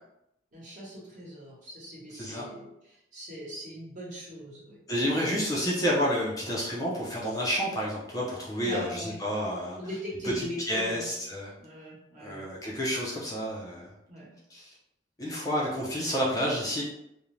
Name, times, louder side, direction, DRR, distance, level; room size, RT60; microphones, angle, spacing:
voice 1, 0.5-4.8 5.1-5.3 8.6-9.2 9.8-11.1 11.6-12.5 14.1-14.3, equal, 45° right, -6 dB, 1.0 m, -40 dB
voice 2, 2.1-2.5 4.9-9.8 10.4-11.5 12.2-13.9 14.5-14.7 15.2-16.8, equal, 20° left, -5 dB, 0.4 m, -30 dB
2.5 x 2.1 x 3.0 m, 0.84 s
head